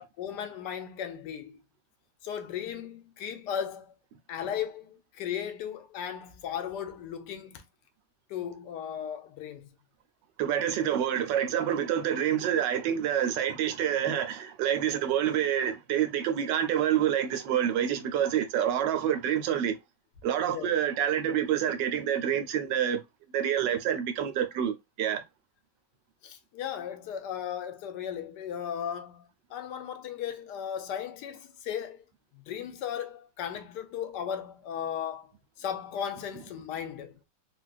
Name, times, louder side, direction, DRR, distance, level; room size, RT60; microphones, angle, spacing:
voice 1, 0.0-1.6 2.2-3.9 4.3-7.6 8.3-9.7 20.5-20.7 26.2-29.3 29.5-32.0 32.5-35.3 35.6-37.1, left 9 dB, 80° left, 1.2 m, -36 dB
voice 2, 10.4-19.8 20.2-23.0 23.3-25.2, right 9 dB, 85° right, 1.3 m, -27 dB
3.7 x 2.3 x 2.4 m
omnidirectional pair, 1.9 m